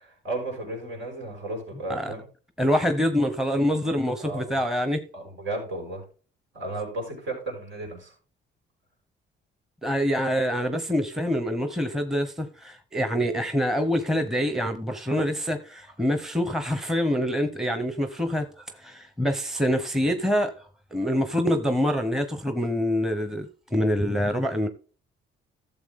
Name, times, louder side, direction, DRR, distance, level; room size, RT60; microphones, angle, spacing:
voice 1, 0.0-2.2 4.2-4.6 5.1-6.0 6.5-8.1, right 2 dB, 75° right, 5.7 m, -34 dB
voice 2, 2.6-5.0 9.8-20.5 20.9-24.7, equal, ahead, 1.0 m, -25 dB
12.5 x 7.2 x 3.7 m
cardioid pair, 90°, 20 cm